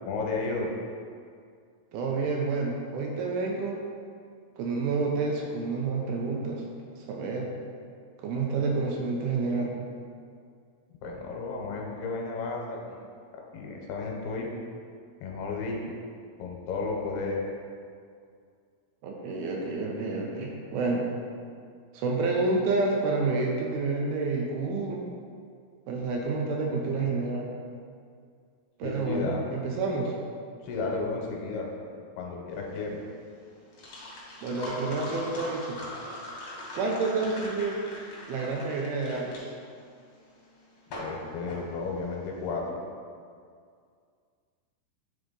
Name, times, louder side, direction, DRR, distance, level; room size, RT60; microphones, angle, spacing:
voice 1, 0.0-0.7 11.0-13.1 13.3-14.5 15.2-15.8 16.4-17.5 28.8-29.4 30.6-31.7 32.2-32.9 41.0-42.8, left 4 dB, 85° left, 0 dB, 2.6 m, -33 dB
voice 2, 1.9-3.9 4.6-6.7 6.9-7.5 8.2-9.7 19.0-21.1 21.9-25.0 25.9-27.5 28.8-30.1 34.4-35.8 36.7-37.8 38.3-39.4, right 3 dB, 80° right, -1 dB, 2.3 m, -29 dB
sound 1, 32.5-42.4, left 1 dB, 65° left, 1.3 m, -42 dB
8.7 x 3.8 x 3.8 m, 2.2 s
omnidirectional pair, 4.6 m